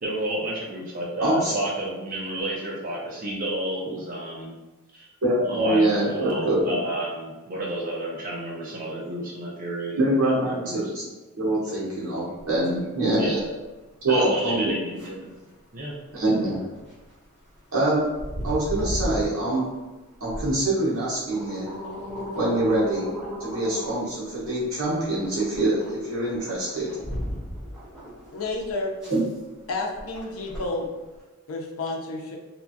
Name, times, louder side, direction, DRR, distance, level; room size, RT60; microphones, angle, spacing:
voice 1, 0.0-4.5 4.9-5.1 5.5-10.3 10.6-10.8 13.2-13.5 14.1-15.3 15.7-15.9, right 1 dB, 40° right, -4 dB, 0.5 m, -31 dB
voice 2, 1.2-1.5 5.2-6.8 10.0-11.0 11.4-13.4 14.0-14.8 16.1-16.6 17.7-18.1 18.4-19.7 20.2-21.7 22.3-23.1 23.4-26.9 29.1-29.2, right 1 dB, 70° right, -7 dB, 0.8 m, -24 dB
sound 1, 12.4-31.2, equal, 5° right, 1.1 m, -37 dB
voice 3, 28.3-28.9 29.7-30.9 31.5-32.4, left 2 dB, 70° left, 1 dB, 0.5 m, -30 dB
2.9 x 2.3 x 2.6 m, 1.1 s
head